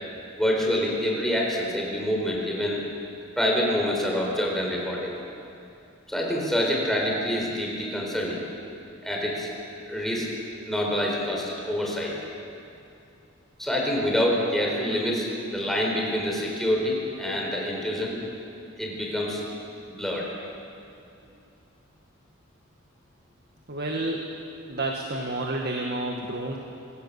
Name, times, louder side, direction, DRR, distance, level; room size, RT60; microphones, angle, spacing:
voice 1, 0.4-2.8 3.4-5.2 6.1-8.4 9.0-9.5 9.9-10.3 10.7-12.2 13.6-18.2 18.8-19.4 19.9-20.3, left 1 dB, ahead, -2 dB, 4.2 m, -26 dB
voice 2, 23.7-24.3 24.7-26.6, right 2 dB, 50° right, 1 dB, 1.7 m, -30 dB
24.0 x 17.5 x 7.0 m, 2.7 s
head